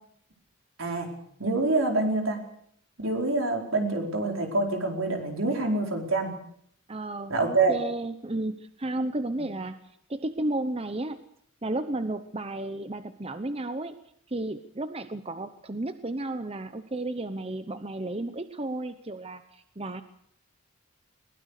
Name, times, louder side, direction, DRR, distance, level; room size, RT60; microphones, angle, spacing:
voice 1, 1.4-2.4 3.0-6.3 7.3-7.7, right 3 dB, 70° right, 3 dB, 4.7 m, -26 dB
voice 2, 6.9-9.8 10.1-11.2 11.6-14.0 14.3-20.0, right 2 dB, 30° right, 10 dB, 0.9 m, -33 dB
21.5 x 19.5 x 6.7 m, 0.67 s
head